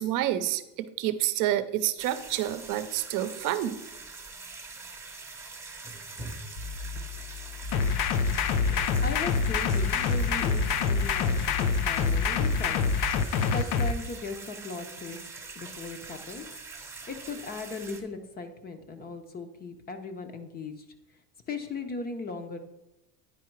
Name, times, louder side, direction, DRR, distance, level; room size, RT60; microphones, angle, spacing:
voice 1, 0.0-3.8, right 13 dB, 60° right, 12 dB, 0.7 m, -28 dB
sound 1, 2.0-18.0, right 3 dB, 10° right, 0.8 m, -43 dB
sound 2, 6.6-13.7, left 4 dB, 55° left, 1.2 m, -39 dB
sound 3, 7.7-13.9, left 5 dB, 70° left, 0.7 m, -26 dB
voice 2, 9.0-13.1 13.5-15.2 15.6-16.4 17.1-20.8 21.5-22.6, left 3 dB, 25° left, 8 dB, 0.7 m, -38 dB
9.9 x 4.8 x 4.6 m, 0.92 s
cardioid pair, 150°, 36 cm